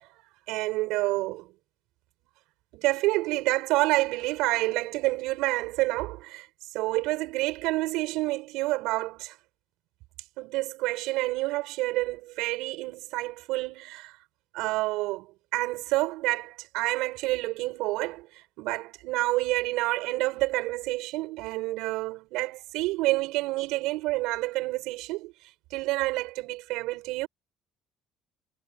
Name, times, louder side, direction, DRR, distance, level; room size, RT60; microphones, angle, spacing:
voice 1, 0.5-1.5 2.7-6.5 6.7-9.4 10.4-14.1 14.5-15.3 15.5-18.3 18.6-25.3 25.7-27.3, right 20 dB, 80° right, 7.3 m, -28 dB
cardioid pair, 175°, 0 cm